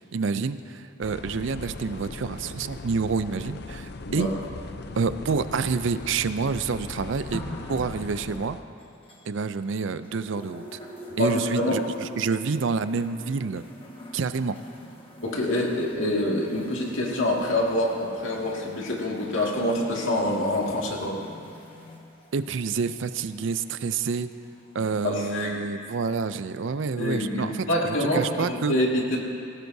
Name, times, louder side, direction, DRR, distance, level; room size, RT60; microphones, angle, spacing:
voice 1, 0.1-4.3 5.0-7.4 7.7-8.6 9.3-10.8 11.2-13.6 14.1-14.6 22.3-24.3 24.7-28.8, right 5 dB, 70° right, 13 dB, 0.4 m, -28 dB
sound 1, 1.0-8.6, left 3 dB, 50° left, 0.5 m, -39 dB
sound 2, 7.3-9.7 10.0-24.7 25.6-25.7, equal, 25° left, 1.4 m, -45 dB
voice 2, 11.2-11.8 15.2-21.2 24.8-25.6 27.0-29.2, left 1 dB, 80° left, -2 dB, 2.2 m, -26 dB
19.0 x 17.0 x 2.7 m, 2.5 s
head